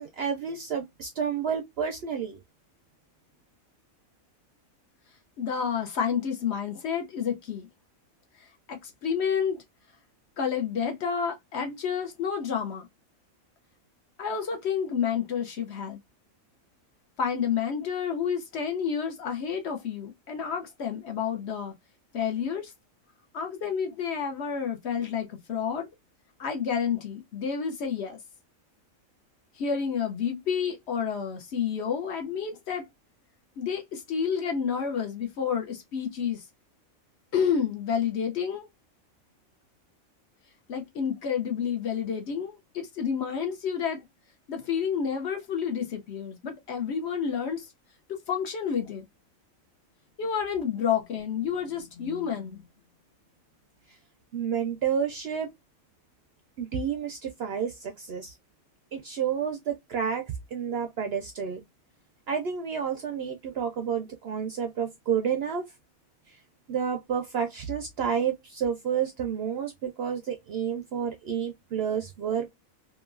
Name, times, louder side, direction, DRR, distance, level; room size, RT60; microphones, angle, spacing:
voice 1, 0.0-2.4 54.3-55.5 56.6-58.3 58.9-60.3 60.5-61.6 62.3-65.7 66.3-66.4 66.7-72.5, right 7 dB, 65° right, 0.6 m, -30 dB
voice 2, 5.4-7.7 8.4-9.6 10.4-12.9 14.2-16.0 17.2-21.7 22.1-22.7 23.3-25.9 26.4-28.2 29.6-32.9 33.6-36.4 37.3-38.7 40.7-44.0 44.5-47.7 48.3-49.1 50.2-52.6, left 7 dB, 60° left, 0.8 m, -30 dB
2.9 x 2.4 x 2.3 m
omnidirectional pair, 1.4 m